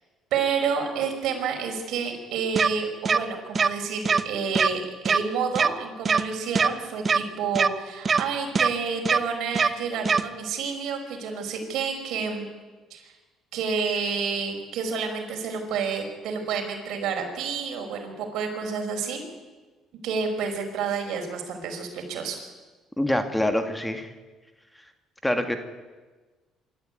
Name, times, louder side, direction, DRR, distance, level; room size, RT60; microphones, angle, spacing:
voice 1, 0.3-12.5 12.9-13.1 13.5-19.2 20.0-22.4, right 5 dB, 75° right, 3 dB, 5.2 m, -29 dB
sound 1, 2.6-2.7 3.1-3.2 3.6-3.7 4.1-4.2 4.5-4.7 5.1-5.2 5.6-5.7 6.1-6.2 6.6-6.7 7.1-7.2 7.6-7.7 8.1-8.2 8.6-8.7 9.1-9.2 9.6-9.7 10.1-10.2, right 5 dB, 35° right, 1.0 m, -21 dB
voice 2, 23.0-24.1 25.2-25.6, left 1 dB, 10° left, 7 dB, 2.1 m, -25 dB
25.5 x 13.0 x 9.5 m, 1.3 s
cardioid pair, 90°, 0 cm